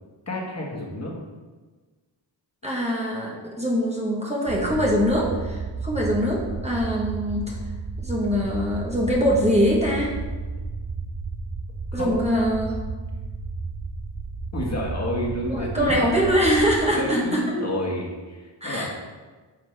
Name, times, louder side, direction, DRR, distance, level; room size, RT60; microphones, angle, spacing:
voice 1, 0.3-1.1 11.9-12.1 14.5-16.0 16.9-18.9, left 1 dB, 35° left, -3 dB, 1.8 m, -30 dB
voice 2, 2.6-7.6 8.0-10.1 11.9-12.8 15.5-17.4 18.6-18.9, equal, 15° right, -3 dB, 1.2 m, -23 dB
sound 1, 4.5-16.8, right 4 dB, 45° right, 1.0 m, -33 dB
9.9 x 6.6 x 3.4 m, 1.3 s
wide cardioid pair, 150°, 43 cm